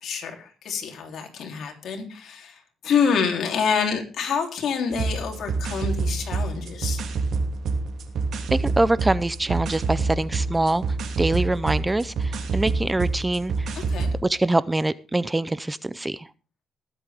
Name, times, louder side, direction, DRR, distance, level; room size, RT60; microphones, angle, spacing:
voice 1, 0.0-7.0 13.7-14.1, left 6 dB, 65° left, 3 dB, 3.5 m, -27 dB
sound 1, 4.9-14.2, right 3 dB, 70° right, 2.9 m, -27 dB
voice 2, 8.5-10.8 11.2-13.7 14.2-16.3, right 2 dB, 15° right, 17 dB, 0.6 m, -24 dB
20.5 x 8.2 x 3.6 m, 0.35 s
cardioid pair, 90°, 0 cm